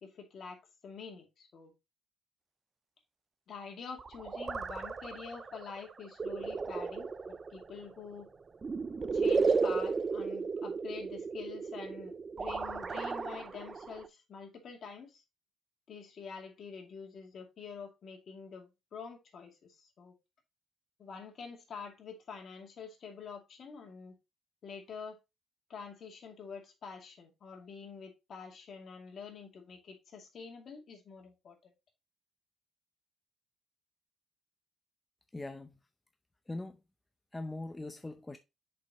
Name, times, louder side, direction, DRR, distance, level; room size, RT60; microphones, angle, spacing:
voice 1, 0.0-1.7 3.5-8.3 9.1-15.2 15.9-20.1 21.0-24.2 24.6-25.2 25.7-31.7, left 5 dB, 55° left, 2.3 m, -47 dB
sound 1, 4.0-14.1, right 4 dB, 35° right, 0.5 m, -34 dB
voice 2, 35.3-35.7 36.5-36.8 37.3-38.4, left 2 dB, 15° left, 0.7 m, -41 dB
6.7 x 5.4 x 3.0 m
cardioid pair, 90°, 0 cm